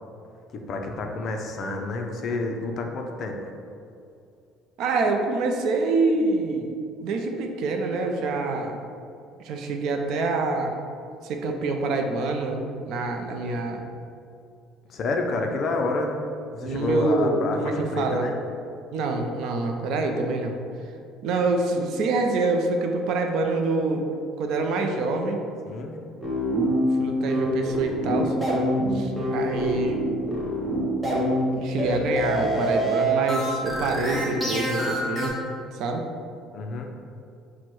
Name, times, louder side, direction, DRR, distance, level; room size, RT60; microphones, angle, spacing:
voice 1, 0.5-3.5 14.9-16.2 16.5-18.4 25.7-26.0 36.5-36.9, left 3 dB, 40° left, 3 dB, 0.4 m, -29 dB
voice 2, 4.8-6.7 7.0-8.8 9.4-10.7 11.2-13.8 16.6-18.3 18.9-20.6 21.2-24.1 24.4-25.4 27.0-28.3 28.9-30.0 31.5-35.4 35.7-36.0, right 3 dB, 60° right, 4 dB, 0.4 m, -26 dB
sound 1, 26.2-35.3, equal, 10° right, 0.7 m, -25 dB
4.4 x 2.1 x 4.5 m, 2.4 s
cardioid pair, 155°, 0 cm